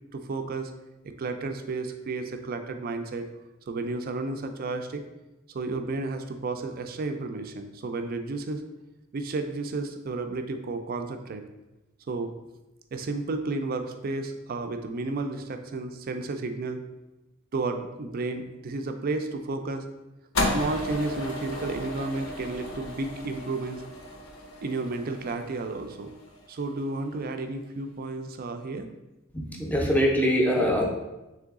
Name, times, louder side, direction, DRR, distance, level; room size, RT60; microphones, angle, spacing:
voice 1, 0.1-0.7 1.0-3.3 3.7-5.0 5.5-8.6 9.1-11.5 12.1-12.3 12.9-16.8 17.5-19.8 20.5-23.8 24.6-26.1 26.5-28.9, right 3 dB, 45° right, 7 dB, 0.4 m, -32 dB
sound 1, 20.3-26.7, left 1 dB, 75° left, 0.7 m, -34 dB
voice 2, 29.5-30.8, equal, 10° left, 0 dB, 0.5 m, -23 dB
3.8 x 3.3 x 3.6 m, 1.0 s
head